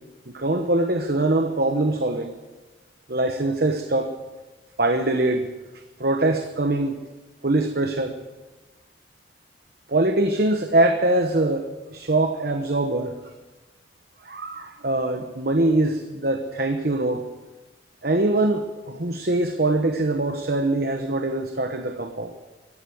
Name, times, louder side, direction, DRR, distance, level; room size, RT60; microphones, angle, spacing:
voice 1, 0.3-2.3 3.1-4.1 4.8-5.5 6.0-7.0 7.4-8.1 9.9-13.1 14.2-17.2 18.0-22.3, right 2 dB, 55° right, 6 dB, 1.1 m, -23 dB
15.5 x 11.5 x 7.8 m, 1.2 s
head